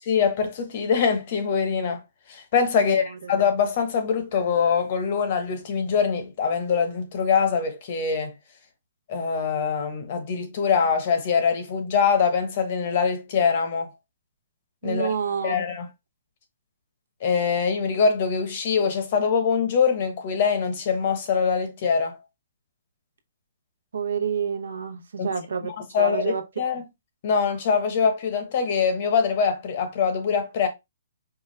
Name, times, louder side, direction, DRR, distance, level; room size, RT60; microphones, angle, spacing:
voice 1, 0.1-2.0 2.3-8.3 9.1-13.9 14.8-15.1 15.4-15.9 17.2-22.2 25.2-25.3 25.9-26.8 27.2-30.7, left 6 dB, 40° left, 0.9 m, -23 dB
voice 2, 2.8-3.3 14.8-15.5 23.9-25.7 26.0-26.7, right 6 dB, 90° right, 0.7 m, -29 dB
4.6 x 2.3 x 3.2 m
hypercardioid pair, 170°, 0 cm